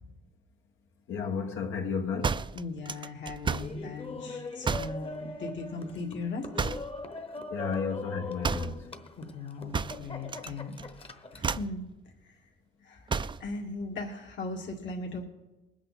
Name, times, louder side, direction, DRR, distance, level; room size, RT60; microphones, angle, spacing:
voice 1, 1.1-2.4 7.5-8.8, left 5 dB, 85° left, 1.7 m, -32 dB
sound 1, 2.2-3.8 4.6-5.0 6.6-7.0 8.4-8.8 9.7-10.5 10.8-11.1 11.4-11.8 13.1-13.5, right 5 dB, 25° right, 0.4 m, -31 dB
voice 2, 2.5-6.7 7.6-7.9 9.1-10.7 11.3-11.9 12.2-12.4 12.8-13.1 13.4-15.2, left 3 dB, 65° left, 2.2 m, -38 dB
Laughter, 3.5-11.6, left 3 dB, 30° left, 1.1 m, -41 dB
20.5 x 8.8 x 4.2 m
cardioid pair, 90°, 20 cm